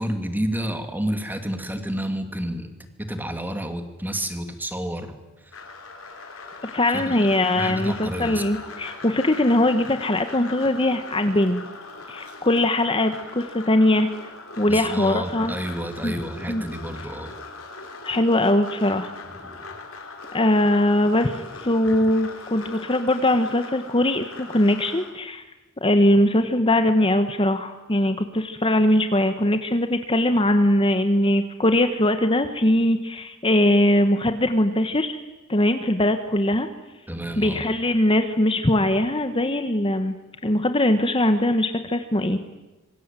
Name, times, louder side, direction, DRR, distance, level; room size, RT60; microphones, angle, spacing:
voice 1, 0.0-2.7 3.1-5.1 6.9-7.2 7.5-8.4 14.7-17.4 19.4-19.7 37.1-37.7, equal, 10° right, 7 dB, 2.6 m, -30 dB
sound 1, 5.5-25.1, left 3 dB, 75° left, 4.6 m, -40 dB
voice 2, 6.7-11.6 12.1-14.1 14.6-15.5 16.0-16.1 16.5-16.6 18.0-19.1 20.3-25.4 25.8-35.2 35.5-36.7 37.4-40.1 40.4-42.4, left 1 dB, 25° left, 8 dB, 1.4 m, -21 dB
26.5 x 24.0 x 9.2 m, 1.1 s
head